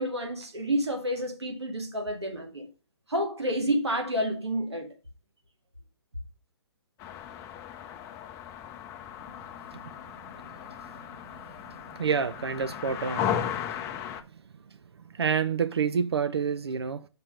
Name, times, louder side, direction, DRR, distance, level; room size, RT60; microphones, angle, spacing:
voice 1, 0.0-2.7 3.1-4.9, equal, 90° right, 2.0 m, -29 dB
sound 1, 7.0-14.2, left 9 dB, 20° left, 0.7 m, -36 dB
voice 2, 11.7-13.4 15.0-17.1, right 6 dB, 75° right, 0.5 m, -28 dB
5.7 x 5.7 x 5.0 m
figure-of-eight pair, 135°, 14 cm